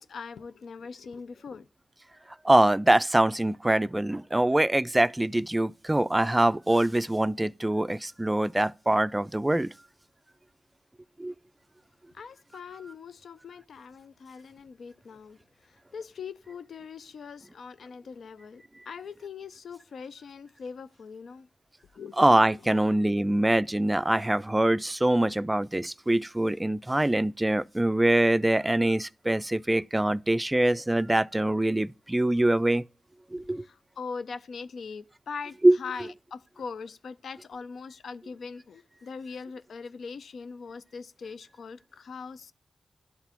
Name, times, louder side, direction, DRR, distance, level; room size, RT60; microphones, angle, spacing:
voice 1, 0.0-1.7 12.1-15.4 15.7-21.5 22.0-22.2 22.6-22.9 33.6-42.5, left 5 dB, 80° left, 0.3 m, -41 dB
voice 2, 2.4-9.7 11.2-11.3 22.2-32.8 33.3-33.6 35.6-35.9, right 1 dB, 15° right, 0.3 m, -24 dB
11.5 x 4.0 x 2.9 m
cardioid pair, 50°, 0 cm